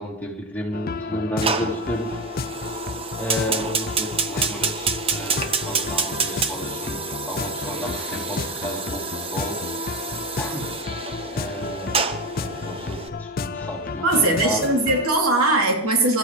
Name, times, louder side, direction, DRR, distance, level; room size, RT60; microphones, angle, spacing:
voice 1, 0.0-2.2 2.6-2.8 3.1-9.6 10.4-10.7 11.3-12.0 12.4-14.6, equal, 10° left, -3 dB, 3.4 m, -32 dB
sound 1, 0.7-15.1, left 4 dB, 45° left, 0.5 m, -32 dB
Fire, 1.4-13.1, right 5 dB, 25° right, 0.9 m, -29 dB
voice 2, 14.0-16.2, right 2 dB, 85° right, 0 dB, 3.5 m, -20 dB
28.0 x 14.5 x 3.4 m, 0.74 s
head